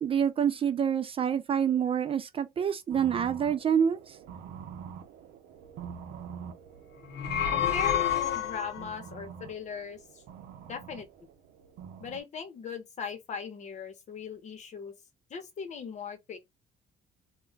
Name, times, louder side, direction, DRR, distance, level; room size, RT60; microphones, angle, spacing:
voice 1, 0.0-4.2, right 8 dB, 35° right, 0.3 m, -27 dB
sound 1, 2.9-12.2, right 7 dB, 80° right, 0.6 m, -46 dB
sound 2, 7.0-8.9, left 9 dB, 75° left, 0.6 m, -28 dB
voice 2, 7.5-10.2 10.7-11.1 12.0-14.9 15.3-16.4, left 6 dB, 45° left, 0.8 m, -39 dB
2.2 x 2.2 x 3.7 m
cardioid pair, 110°, 17 cm